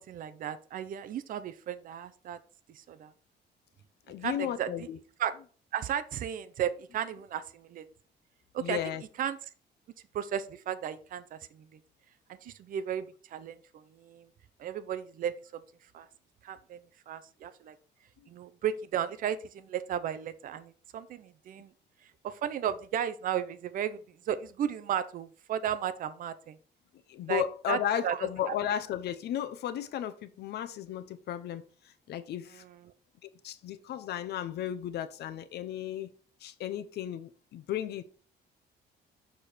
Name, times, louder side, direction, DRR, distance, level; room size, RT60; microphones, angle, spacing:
voice 1, 0.0-2.4 2.8-3.1 4.2-4.9 5.2-5.3 5.7-7.8 8.5-8.8 9.2-9.4 10.1-11.6 12.4-14.3 14.6-15.6 15.9-16.1 16.4-16.8 17.1-17.7 18.3-21.7 22.2-24.0 24.3-26.6 27.3-27.4 27.7-27.8 28.0-28.5, right 9 dB, 50° right, 0.6 m, -34 dB
voice 2, 4.1-5.0 8.6-9.0 27.1-32.6 33.2-36.1 36.4-38.0, left 10 dB, 65° left, 0.8 m, -34 dB
6.8 x 5.0 x 4.3 m
cardioid pair, 165°, 18 cm